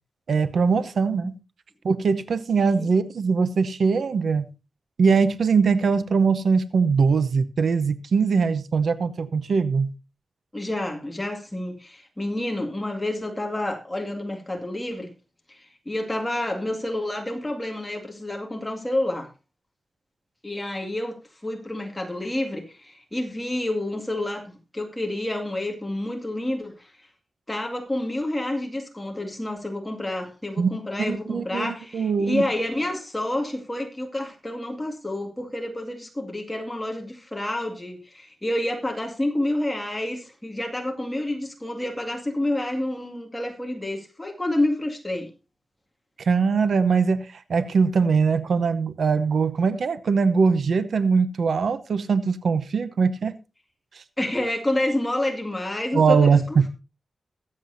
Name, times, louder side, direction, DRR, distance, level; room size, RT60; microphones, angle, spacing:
voice 1, 0.3-1.3 1.8-4.4 5.0-9.9 30.6-30.7 31.1-32.5 46.2-53.4 53.9-54.0 55.9-56.7, right 5 dB, 80° right, 0.8 m, -21 dB
voice 2, 10.5-15.1 15.5-19.3 20.4-26.9 27.5-45.3 54.2-56.4, left 1 dB, 10° left, 2.2 m, -29 dB
21.5 x 7.7 x 2.7 m
wide cardioid pair, 175°, 0 cm